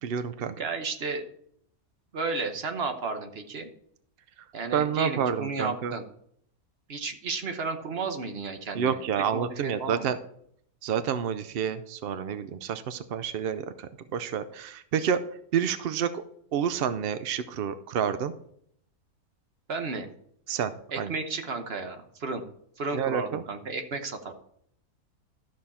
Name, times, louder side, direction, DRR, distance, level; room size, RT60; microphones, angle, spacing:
voice 1, 0.0-0.5 4.7-5.9 8.7-10.2 10.8-15.2 15.5-16.2 16.5-18.3 20.5-20.7 21.0-21.1 22.9-23.4, right 8 dB, 70° right, 11 dB, 0.5 m, -29 dB
voice 2, 0.6-1.2 2.1-3.7 4.5-6.0 6.9-9.0 9.3-10.1 19.7-20.1 20.9-22.4 22.8-24.3, right 4 dB, 45° right, 6 dB, 1.1 m, -33 dB
12.5 x 6.4 x 4.2 m, 0.68 s
omnidirectional pair, 1.6 m